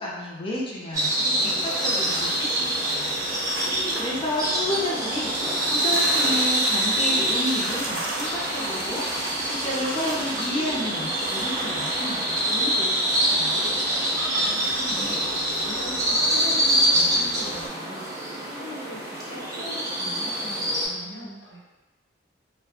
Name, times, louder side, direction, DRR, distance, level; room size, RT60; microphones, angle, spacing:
voice 1, 0.0-3.1 3.6-13.7, left 1 dB, 30° left, -5 dB, 0.5 m, -31 dB
sound 1, 0.9-20.9, right 1 dB, 20° right, 0.5 m, -25 dB
sound 2, 1.4-17.7, right 1 dB, 85° right, 0.5 m, -36 dB
voice 2, 14.5-21.6, left 1 dB, 80° left, -8 dB, 0.9 m, -41 dB
2.3 x 2.2 x 2.8 m, 1.1 s
head